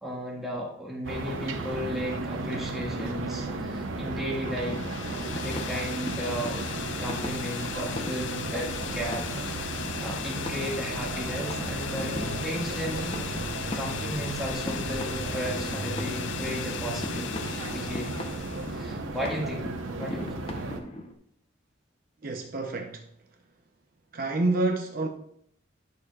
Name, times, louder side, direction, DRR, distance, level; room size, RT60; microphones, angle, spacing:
voice 1, 0.0-4.9 5.4-6.6 6.9-13.3 13.6-17.3 17.7-18.3 18.7-19.7 20.0-20.3, equal, ahead, 1.7 m, -35 dB
sound 1, 1.0-20.8, right 2 dB, 85° right, 0.9 m, -34 dB
sound 2, 2.4-21.1, left 1 dB, 30° left, 0.7 m, -41 dB
sound 3, 4.5-18.9, left 8 dB, 65° left, 0.5 m, -38 dB
voice 2, 22.2-23.1 24.1-25.1, right 2 dB, 45° right, 0.6 m, -28 dB
11.0 x 6.6 x 2.3 m
head